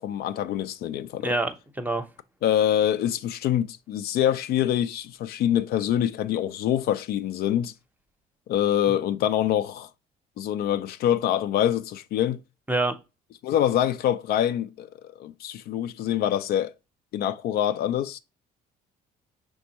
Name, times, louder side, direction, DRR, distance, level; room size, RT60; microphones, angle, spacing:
voice 1, 0.0-1.3 2.4-7.7 8.5-9.9 10.4-12.4 13.4-14.9 15.2-16.7 17.1-18.2, left 11 dB, 65° left, 0.4 m, -25 dB
voice 2, 1.2-2.1 12.7-13.0, right 2 dB, 10° right, 0.7 m, -26 dB
5.2 x 3.5 x 2.9 m
cardioid pair, 110°, 17 cm